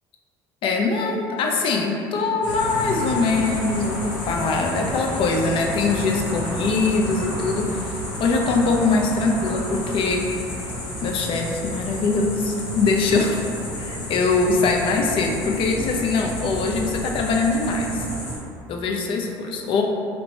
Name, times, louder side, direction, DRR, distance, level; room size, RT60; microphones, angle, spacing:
voice 1, 0.6-10.3 11.0-13.4 13.8-18.1 18.7-19.8, left 3 dB, 50° left, 2 dB, 0.5 m, -22 dB
sound 1, 2.4-18.4, left 1 dB, 80° left, 0.8 m, -31 dB
3.2 x 2.9 x 2.6 m, 2.5 s
hypercardioid pair, 75°, 11 cm